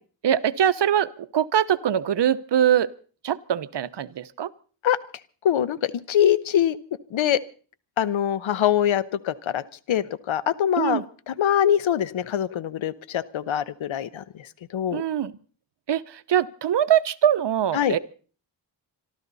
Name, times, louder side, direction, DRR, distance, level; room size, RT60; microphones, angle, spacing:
voice 1, 0.2-2.9 3.2-4.5 10.8-11.0 14.9-15.3 15.9-18.0, right 10 dB, 60° right, 15 dB, 0.9 m, -23 dB
voice 2, 5.4-6.8 7.1-7.4 8.0-9.6 9.9-11.0 11.3-14.2 14.7-15.0 17.7-18.0, left 10 dB, 75° left, 17 dB, 1.0 m, -23 dB
26.5 x 13.0 x 4.0 m, 0.40 s
cardioid pair, 80°, 47 cm